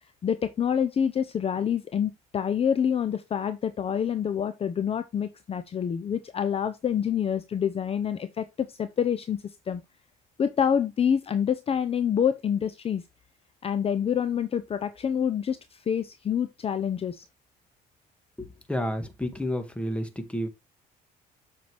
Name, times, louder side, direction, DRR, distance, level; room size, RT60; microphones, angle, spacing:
voice 1, 0.2-9.4 9.7-9.8 10.4-13.0 13.6-17.3, left 8 dB, 35° left, 0.7 m, -27 dB
voice 2, 18.4-20.5, equal, 5° left, 1.8 m, -31 dB
7.8 x 5.9 x 3.4 m
cardioid pair, 110°, 17 cm